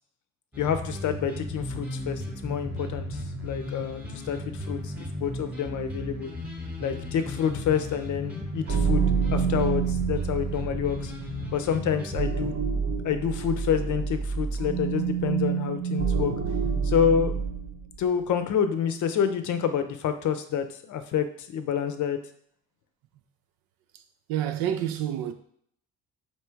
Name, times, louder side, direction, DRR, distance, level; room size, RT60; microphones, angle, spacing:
sound 1, 0.5-12.2, left 1 dB, 5° right, 1.0 m, -35 dB
voice 1, 0.6-6.3 6.8-11.1 11.5-12.6 13.0-16.3 16.8-17.3 18.0-22.2, left 8 dB, 55° left, 0.6 m, -28 dB
sound 2, 8.7-17.9, right 6 dB, 45° right, 0.9 m, -28 dB
voice 2, 24.3-25.3, right 10 dB, 75° right, 0.5 m, -28 dB
3.3 x 2.9 x 4.5 m
supercardioid pair, 70°, 36 cm